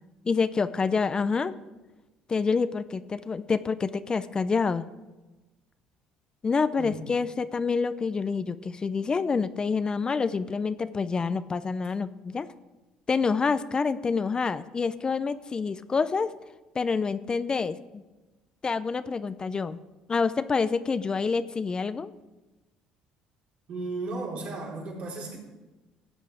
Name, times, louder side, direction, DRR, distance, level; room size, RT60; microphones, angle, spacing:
voice 1, 0.3-1.5 2.3-4.9 6.4-12.5 13.1-16.3 16.7-18.0 18.6-19.8 20.1-22.1, left 5 dB, 30° left, 13 dB, 0.6 m, -27 dB
voice 2, 23.7-25.4, right 3 dB, 65° right, -3 dB, 4.5 m, -35 dB
15.0 x 8.2 x 5.0 m, 1.1 s
supercardioid pair, 75°, 3 cm